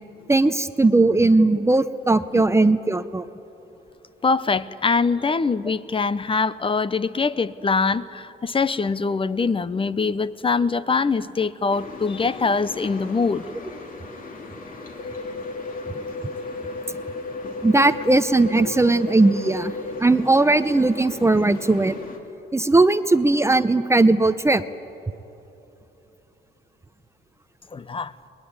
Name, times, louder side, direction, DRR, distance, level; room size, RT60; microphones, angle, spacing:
voice 1, 0.3-3.3 17.6-19.7 20.0-21.9 22.5-24.6, right 2 dB, 15° right, 12 dB, 0.7 m, -18 dB
voice 2, 4.2-13.4 27.7-28.1, left 4 dB, 25° left, 16 dB, 0.8 m, -23 dB
sound 1, 11.7-22.2, left 3 dB, 45° left, 2.9 m, -39 dB
sound 2, 15.0-20.0, left 3 dB, 60° left, 1.7 m, -34 dB
23.5 x 21.0 x 9.7 m, 3.0 s
cardioid pair, 90°, 20 cm